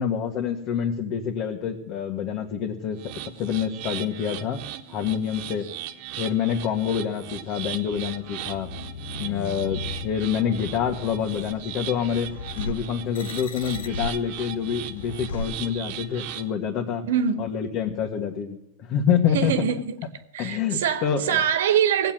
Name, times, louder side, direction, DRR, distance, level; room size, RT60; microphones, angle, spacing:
voice 1, 0.0-3.0 3.4-4.6 4.9-5.6 6.2-8.7 9.2-12.3 12.6-17.0 17.4-18.6 18.9-19.5 20.4-21.4, left 8 dB, 50° left, 1.9 m, -26 dB
sound 1, 2.9-16.5, right 12 dB, 60° right, 1.5 m, -38 dB
sound 2, 7.9-16.2, left 3 dB, 85° left, 1.1 m, -37 dB
voice 2, 17.1-17.6 19.3-20.0 20.3-22.1, right 8 dB, 80° right, 1.8 m, -24 dB
17.5 x 8.2 x 9.0 m
hypercardioid pair, 120°, 0 cm